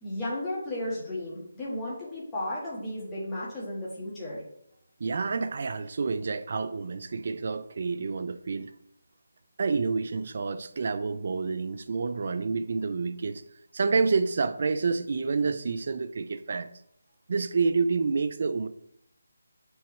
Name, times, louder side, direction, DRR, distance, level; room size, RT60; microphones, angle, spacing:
voice 1, 0.0-4.4, left 1 dB, 10° left, 1.3 m, -34 dB
voice 2, 5.0-8.7 9.6-13.4 13.7-16.7 17.3-18.7, right 4 dB, 40° right, 0.3 m, -28 dB
8.2 x 4.6 x 3.1 m
figure-of-eight pair, 175°, 0 cm